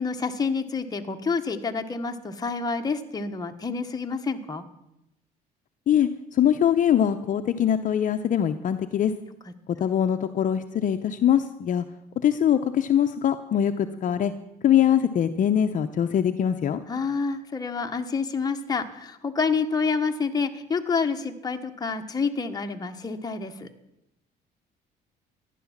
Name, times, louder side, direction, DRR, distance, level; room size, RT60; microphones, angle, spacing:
voice 1, 0.0-4.6 9.4-9.5 16.9-23.7, left 5 dB, 25° left, 4 dB, 1.4 m, -28 dB
voice 2, 5.9-9.1 9.8-11.8 12.2-14.3 14.6-16.8, left 9 dB, 50° left, 8 dB, 0.8 m, -22 dB
14.5 x 11.0 x 7.4 m, 0.86 s
cardioid pair, 110°, 17 cm